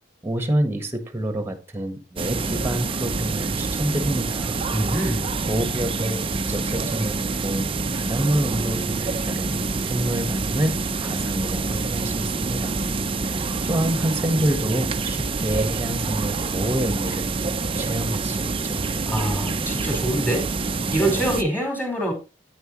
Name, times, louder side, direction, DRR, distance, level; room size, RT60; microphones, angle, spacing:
voice 1, 0.2-4.6 5.5-6.2 6.5-7.7 7.9-9.5 9.8-12.8 13.2-17.3 17.7-19.0, right 1 dB, 15° right, 1.4 m, -27 dB
sound 1, 2.2-21.4, right 3 dB, 30° right, 0.6 m, -26 dB
voice 2, 4.7-5.3 19.1-20.5 20.9-22.1, right 1 dB, 10° left, 4.5 m, -24 dB
9.4 x 9.2 x 3.1 m
head